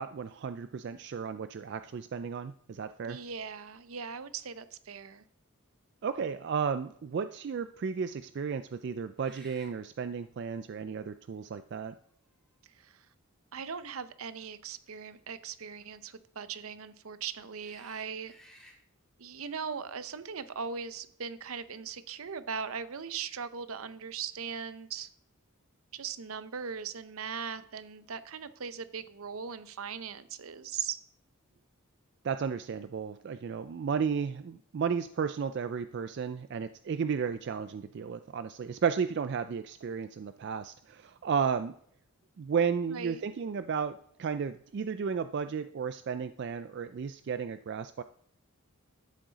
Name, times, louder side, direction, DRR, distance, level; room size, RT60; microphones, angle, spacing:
voice 1, 0.0-3.2 6.0-11.9 32.2-41.7 42.4-48.0, right 6 dB, 50° right, 11 dB, 0.3 m, -33 dB
voice 2, 3.0-5.2 12.8-13.1 13.5-18.3 19.2-25.1 25.9-31.0 42.9-43.2, right 6 dB, 75° right, 13 dB, 0.7 m, -39 dB
sound 1, 3.9-4.0 4.5-4.7 9.1-9.8 11.0-11.1 12.1-12.9 14.8-15.0 17.6-18.8, equal, ahead, 1.8 m, -57 dB
12.5 x 7.7 x 4.0 m, 0.65 s
head